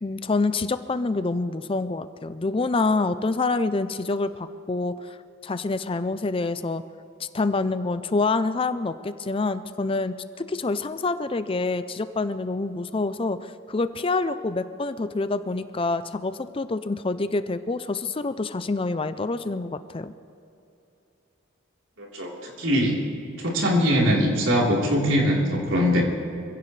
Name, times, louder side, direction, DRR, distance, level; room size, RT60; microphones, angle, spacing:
voice 1, 0.0-5.2 5.4-6.8 7.2-20.1, left 3 dB, 25° left, 12 dB, 0.5 m, -27 dB
voice 2, 22.0-22.9 23.4-26.0, equal, 80° right, -3 dB, 3.8 m, -22 dB
26.5 x 16.0 x 3.3 m, 2.7 s
head